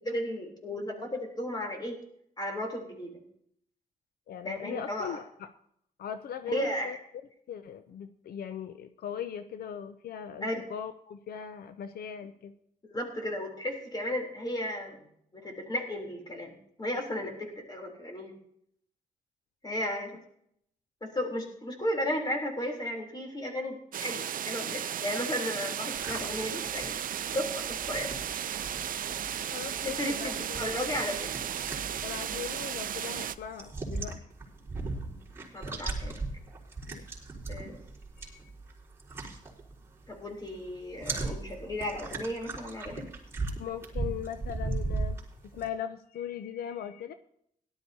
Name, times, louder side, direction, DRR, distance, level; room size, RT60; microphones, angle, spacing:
voice 1, 0.0-2.0 2.4-3.2 4.4-5.2 6.5-6.9 10.4-10.6 12.9-15.0 15.3-16.5 16.8-18.3 19.6-20.2 21.0-27.0 27.3-28.5 29.8-31.3 35.5-36.2 37.5-37.8 40.1-43.1, left 1 dB, 25° left, 2 dB, 3.3 m, -34 dB
voice 2, 4.3-5.5 6.0-7.0 7.5-12.5 29.3-30.6 32.0-34.2 36.9-37.0 38.2-38.4 41.2-41.3 43.6-45.2 45.5-47.1, left 8 dB, 90° left, 10 dB, 0.6 m, -39 dB
sound 1, 23.9-33.4, right 9 dB, 65° right, 0.5 m, -35 dB
sound 2, 26.0-40.2 40.5-45.7, right 3 dB, 15° right, 3.9 m, -38 dB
17.5 x 12.0 x 2.8 m, 0.71 s
cardioid pair, 105°, 15 cm